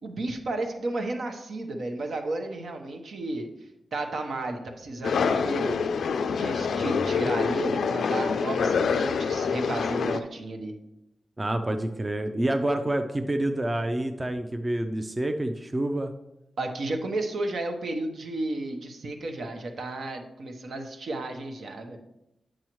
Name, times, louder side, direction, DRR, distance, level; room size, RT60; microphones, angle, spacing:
voice 1, 0.0-3.5 3.9-5.9 6.4-10.7 16.6-22.0, right 2 dB, 75° right, 4 dB, 1.0 m, -33 dB
sound 1, 5.0-10.2, left 5 dB, 85° left, 0.4 m, -26 dB
voice 2, 11.4-16.1, right 1 dB, 20° right, 6 dB, 0.5 m, -28 dB
8.8 x 6.2 x 3.1 m, 0.87 s
wide cardioid pair, 120°, 0 cm